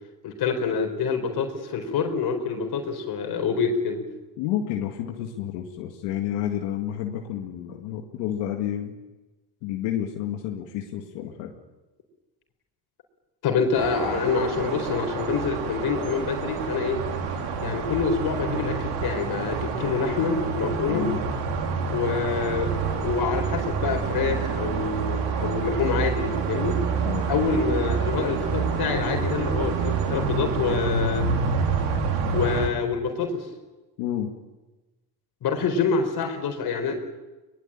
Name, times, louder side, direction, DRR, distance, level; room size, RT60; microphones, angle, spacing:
voice 1, 0.2-4.0 13.4-17.0 17.6-21.1 21.9-26.8 27.3-31.3 32.3-33.5 35.4-36.9, left 5 dB, 60° left, 4 dB, 4.4 m, -26 dB
voice 2, 4.4-8.9 9.6-11.5 20.9-21.2 27.0-27.4 34.0-34.3, left 11 dB, 90° left, 2 dB, 2.2 m, -30 dB
sound 1, 13.7-32.7, right 5 dB, 80° right, 4.0 m, -27 dB
22.5 x 21.0 x 8.9 m, 1.1 s
supercardioid pair, 85°, 42 cm